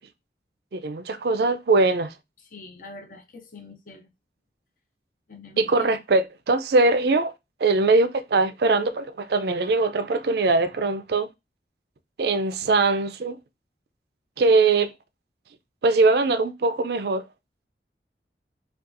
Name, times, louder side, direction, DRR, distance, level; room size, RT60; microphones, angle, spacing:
voice 1, 0.7-2.1 5.6-7.3 7.6-11.3 12.2-13.4 14.4-14.9 15.8-17.3, right 3 dB, 65° right, 0.4 m, -21 dB
voice 2, 2.5-4.1 5.3-6.0, left 3 dB, 45° left, 0.6 m, -44 dB
5.2 x 2.4 x 2.5 m
head